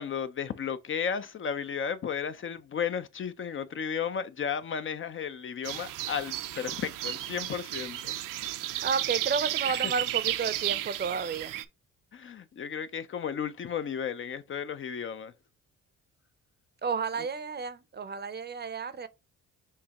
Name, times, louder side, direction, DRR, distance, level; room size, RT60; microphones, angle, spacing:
voice 1, 0.0-8.5 9.7-9.9 12.1-15.3, left 7 dB, 40° left, 0.5 m, -34 dB
sound 1, 5.6-11.6, right 14 dB, 75° right, 0.6 m, -33 dB
voice 2, 8.8-11.5 16.8-19.1, right 5 dB, 30° right, 0.6 m, -32 dB
6.5 x 2.8 x 2.9 m
cardioid pair, 80°, 33 cm